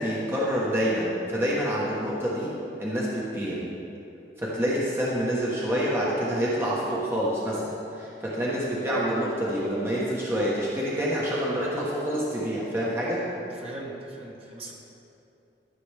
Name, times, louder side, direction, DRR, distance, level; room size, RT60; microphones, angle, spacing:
voice 1, 0.0-2.5 2.8-3.6 4.4-13.2, equal, 15° right, -6 dB, 1.1 m, -27 dB
voice 2, 13.5-14.7, right 2 dB, 35° right, -3 dB, 1.4 m, -40 dB
13.0 x 6.9 x 3.4 m, 2.8 s
head